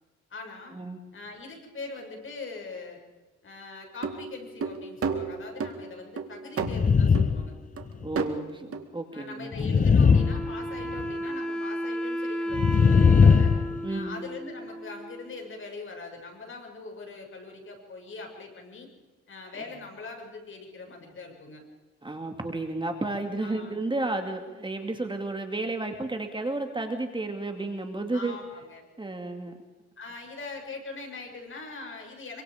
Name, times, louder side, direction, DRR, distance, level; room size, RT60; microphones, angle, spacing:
voice 1, 0.3-0.8 1.1-3.0 3.4-7.5 9.1-13.5 13.9-18.9 19.3-21.6 23.4-23.8 28.1-28.8 30.0-32.4, left 3 dB, 40° left, 2 dB, 6.6 m, -42 dB
sound 1, 3.9-5.8 6.2-6.8 7.1-7.4 7.8-7.9 8.2-8.3 8.7-8.8, right 5 dB, 50° right, 2.3 m, -31 dB
sound 2, 6.6-7.5 7.8-8.0 9.5-11.1 12.5-13.8, left 5 dB, 25° left, 0.7 m, -20 dB
voice 2, 8.0-10.0 13.8-14.2 22.0-28.4 29.0-29.6, right 2 dB, 15° right, 4 dB, 2.4 m, -32 dB
Wind instrument woodwind instrument, 10.0-15.5, equal, 5° left, 4.8 m, -33 dB
26.0 x 24.5 x 5.1 m, 1.3 s
cardioid pair, 90°, 30 cm